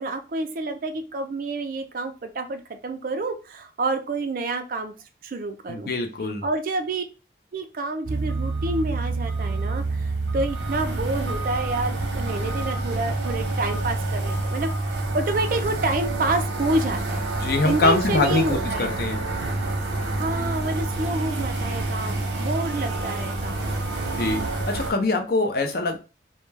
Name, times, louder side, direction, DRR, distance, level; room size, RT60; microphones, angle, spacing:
voice 1, 0.0-4.9 5.2-5.9 6.4-7.0 7.5-14.7 15.1-17.3 17.6-18.9 20.1-23.7, right 2 dB, 50° right, 0.4 m, -28 dB
voice 2, 5.7-6.4 17.4-19.2 24.2-24.4 24.7-26.0, left 3 dB, 55° left, 0.5 m, -23 dB
sound 1, 8.0-24.9, right 2 dB, 85° right, 0.7 m, -27 dB
2.1 x 2.1 x 3.1 m
head